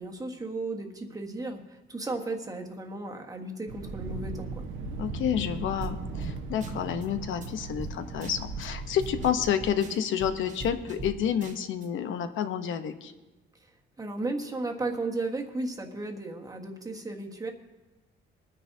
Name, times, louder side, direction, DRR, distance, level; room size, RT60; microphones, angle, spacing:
voice 1, 0.0-4.6 13.6-13.7 14.0-17.5, right 2 dB, 15° right, 2 dB, 1.4 m, -35 dB
Thunder, 3.7-9.3, right 3 dB, 75° right, 1.1 m, -37 dB
voice 2, 5.0-13.1, left 9 dB, 75° left, 9 dB, 0.8 m, -29 dB
sound 1, 5.8-5.9 6.2-6.3 6.6-7.1 7.4-7.5 7.8-7.9 8.2-8.7 9.0-11.1 11.4-11.9, right 3 dB, 35° right, 1.2 m, -39 dB
22.5 x 9.9 x 2.7 m, 1.1 s
cardioid pair, 125°, 20 cm